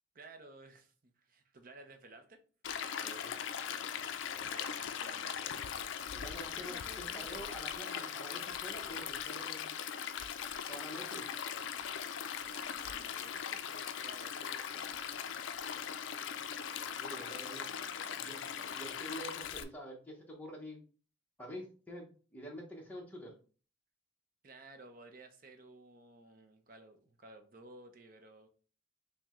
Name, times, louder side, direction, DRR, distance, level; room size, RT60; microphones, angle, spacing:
voice 1, 0.1-2.4 4.5-5.4 6.5-8.2 12.4-15.0 16.9-19.0 24.4-28.5, right 3 dB, 45° right, 0.6 m, -56 dB
Stream, 2.6-19.6, left 8 dB, 70° left, 0.3 m, -40 dB
voice 2, 3.0-3.4 6.1-9.7 10.7-11.3 17.0-17.6 18.2-18.4 18.7-20.8 21.4-22.1 22.3-23.3, equal, 10° left, 0.8 m, -47 dB
5.7 x 2.2 x 3.0 m
head